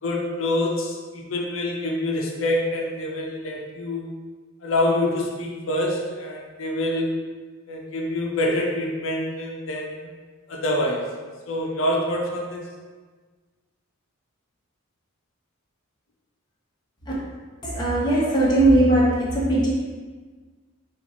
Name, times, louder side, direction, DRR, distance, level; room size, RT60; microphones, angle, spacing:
voice 1, 0.0-4.1 4.6-7.2 7.7-10.1 10.5-11.1 11.5-12.7, left 1 dB, 65° left, -1 dB, 0.6 m, -26 dB
voice 2, 17.6-19.7, right 1 dB, 20° left, -6 dB, 1.0 m, -19 dB
4.4 x 2.5 x 4.1 m, 1.4 s
head